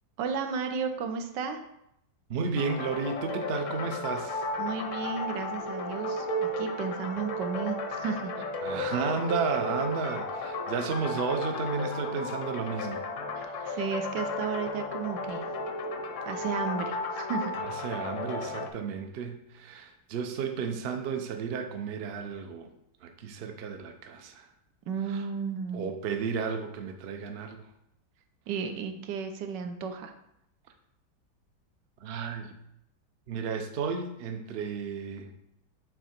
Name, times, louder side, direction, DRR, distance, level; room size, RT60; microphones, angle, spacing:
voice 1, 0.2-1.6 4.6-8.3 13.4-15.5 16.2-17.5 24.9-25.9 28.5-30.1, right 6 dB, 85° right, 7 dB, 1.4 m, -33 dB
voice 2, 2.3-4.4 8.6-13.0 13.6-13.8 17.6-22.7 23.0-24.5 25.1-25.2 25.7-27.7 32.0-32.5 33.3-35.3, right 5 dB, 60° right, 6 dB, 0.6 m, -33 dB
sound 1, 2.6-18.7, left 2 dB, 60° left, 0.8 m, -34 dB
6.9 x 3.7 x 4.3 m, 0.79 s
omnidirectional pair, 1.9 m